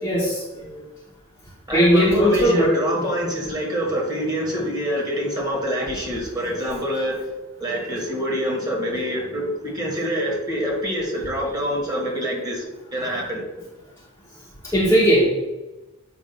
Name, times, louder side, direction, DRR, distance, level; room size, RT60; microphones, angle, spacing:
voice 1, 0.0-0.8 1.7-2.7 14.6-15.3, equal, 10° left, -5 dB, 0.9 m, -18 dB
voice 2, 1.7-7.3 7.6-12.6 12.9-13.4, equal, 20° right, -3 dB, 1.5 m, -26 dB
7.5 x 2.6 x 5.3 m, 1.1 s
head